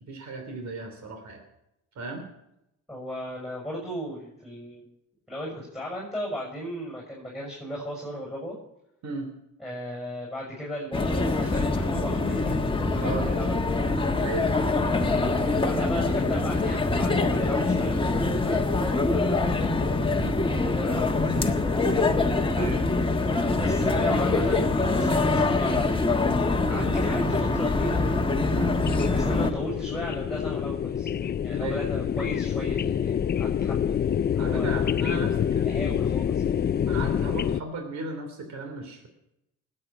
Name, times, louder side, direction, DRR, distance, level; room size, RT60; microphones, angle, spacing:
voice 1, 0.1-1.4 1.9-2.2 9.0-9.3 13.0-13.2 14.2-14.5 20.2-20.4 22.5-22.8 26.7-26.9 28.5-28.8 31.6-31.8 34.4-35.8 36.8-39.1, right 3 dB, 65° right, 5 dB, 3.2 m, -36 dB
voice 2, 2.9-4.8 5.3-8.6 9.6-12.5 12.8-13.9 14.8-19.7 20.4-22.1 22.5-22.7 23.5-25.1 25.6-26.1 26.7-28.0 29.1-31.1 31.4-33.8 34.3-34.9 35.6-36.5, equal, ahead, -2 dB, 6.9 m, -36 dB
sound 1, 10.9-29.5, left 3 dB, 15° left, 1.5 m, -24 dB
sound 2, 27.8-37.6, left 8 dB, 35° left, 0.5 m, -27 dB
19.5 x 8.8 x 6.1 m, 0.85 s
cardioid pair, 90°, 30 cm